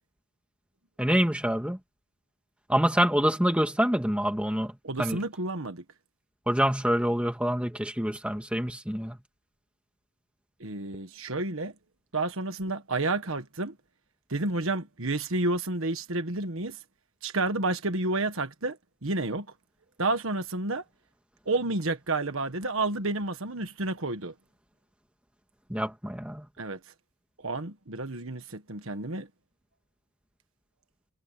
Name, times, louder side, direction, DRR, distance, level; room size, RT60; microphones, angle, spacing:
voice 1, 1.0-1.8 2.7-4.7 5.0-5.2 6.5-9.2 25.7-26.4, equal, 5° right, 1.9 m, -26 dB
voice 2, 4.8-5.8 10.6-11.7 12.1-13.7 14.3-16.8 17.2-18.8 19.0-19.5 20.0-20.8 21.5-24.3 26.6-26.8 27.4-29.3, right 2 dB, 65° right, 1.5 m, -30 dB
head